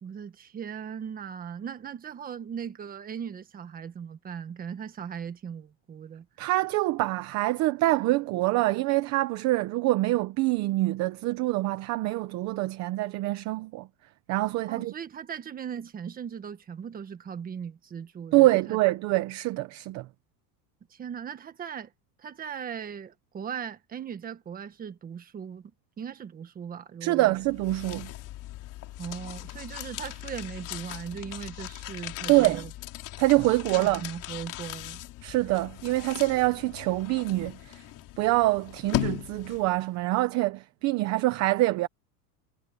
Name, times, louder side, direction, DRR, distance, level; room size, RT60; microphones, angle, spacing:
voice 1, 0.0-6.3 14.7-18.8 20.9-21.9 22.2-25.7 26.0-27.3 29.0-32.7 33.7-35.0, right 7 dB, 20° right, 1.4 m, -38 dB
voice 2, 6.4-13.9 14.3-14.9 18.3-20.1 27.0-28.1 32.3-32.6 33.2-34.0 35.2-37.8 38.2-41.9, right 18 dB, 35° right, 0.8 m, -25 dB
sound 1, 27.3-39.9, left 16 dB, 40° left, 3.6 m, -38 dB
cardioid pair, 170°, 48 cm